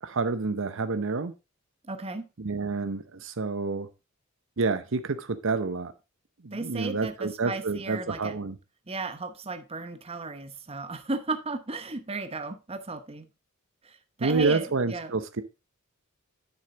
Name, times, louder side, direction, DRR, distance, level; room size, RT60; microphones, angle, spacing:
voice 1, 0.0-1.3 2.4-3.9 4.6-5.9 6.4-8.6 14.2-15.4, right 4 dB, 65° right, 0.8 m, -28 dB
voice 2, 1.9-2.3 6.5-8.4 8.9-13.3 13.8-15.1, right 3 dB, 30° right, 0.9 m, -35 dB
9.9 x 6.9 x 3.9 m
head